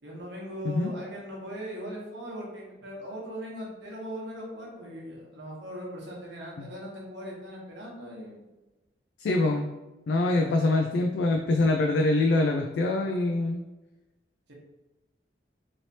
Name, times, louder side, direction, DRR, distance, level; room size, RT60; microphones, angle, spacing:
voice 1, 0.0-8.4 10.2-10.7 14.5-14.6, equal, 75° right, -3 dB, 1.0 m, -39 dB
voice 2, 9.2-9.7 10.1-13.6, left 2 dB, 70° left, 2 dB, 0.3 m, -24 dB
3.1 x 2.8 x 2.8 m, 1.1 s
head